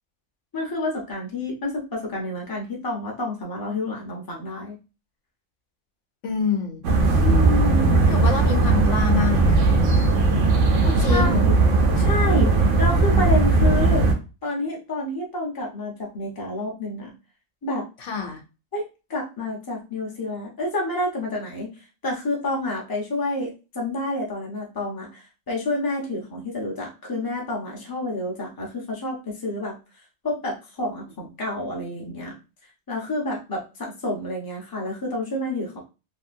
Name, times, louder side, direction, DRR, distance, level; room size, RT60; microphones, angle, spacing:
voice 1, 0.5-4.8 7.2-8.0 11.1-11.6 12.0-14.1 14.4-17.1 17.6-17.9 18.7-21.7 22.0-29.8 30.2-32.4 32.9-35.8, left 1 dB, 20° left, -2 dB, 0.7 m, -29 dB
voice 2, 6.2-6.8 8.1-9.6 10.8-11.4 18.0-18.4, left 6 dB, 80° left, 4 dB, 1.0 m, -27 dB
sound 1, 6.8-14.1, right 3 dB, 80° right, 1.0 m, -18 dB
2.8 x 2.7 x 2.5 m, 0.30 s
omnidirectional pair, 1.2 m